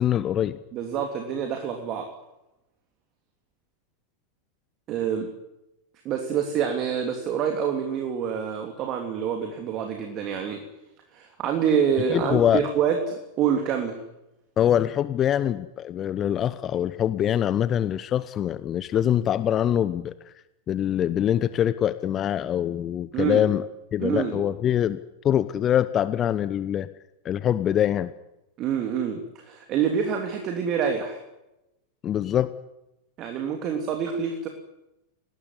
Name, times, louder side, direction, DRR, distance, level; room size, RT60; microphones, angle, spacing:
voice 1, 0.0-0.6 12.1-12.6 14.6-20.3 20.7-23.6 23.9-26.9 27.2-28.1 32.0-32.5, left 10 dB, 30° left, 15 dB, 1.0 m, -24 dB
voice 2, 0.7-2.1 4.9-5.3 6.0-10.6 11.1-14.0 23.1-23.5 24.0-24.4 28.6-31.2 33.2-34.5, right 7 dB, 35° right, 4 dB, 3.1 m, -26 dB
23.0 x 19.0 x 9.9 m, 0.92 s
figure-of-eight pair, 90°, 0 cm